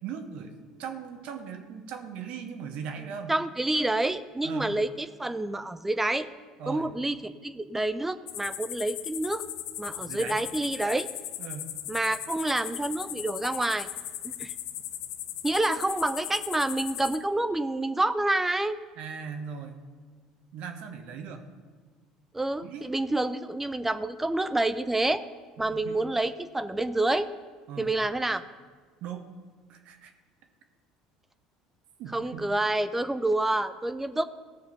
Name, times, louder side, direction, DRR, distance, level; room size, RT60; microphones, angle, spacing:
voice 1, 0.0-3.4 4.4-4.7 6.6-6.9 10.0-10.4 11.4-11.7 19.0-19.8 20.5-21.5 22.6-22.9 25.6-26.0 27.7-27.9 29.0-29.3 29.7-30.1 32.0-32.4, right 6 dB, 65° right, 5 dB, 1.3 m, -39 dB
voice 2, 3.3-6.3 6.7-9.4 9.8-11.1 11.9-13.9 14.2-14.5 15.4-18.8 22.3-25.2 25.6-27.3 27.8-28.4 32.1-34.2, right 2 dB, 10° right, 12 dB, 0.5 m, -28 dB
sound 1, 8.3-17.2, left 12 dB, 75° left, 0.6 m, -38 dB
15.0 x 6.6 x 5.4 m, 1.5 s
hypercardioid pair, 70°, 2 cm